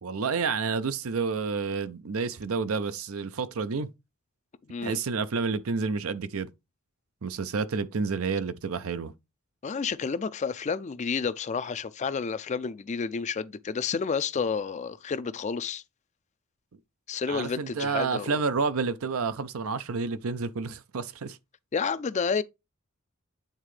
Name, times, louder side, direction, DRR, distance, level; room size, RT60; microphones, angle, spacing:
voice 1, 0.0-3.9 4.8-6.5 7.2-9.1 17.3-21.4, right 4 dB, 80° right, 0.6 m, -29 dB
voice 2, 9.6-15.8 17.1-18.3 21.7-22.4, left 5 dB, 35° left, 0.4 m, -30 dB
8.8 x 3.7 x 3.2 m
head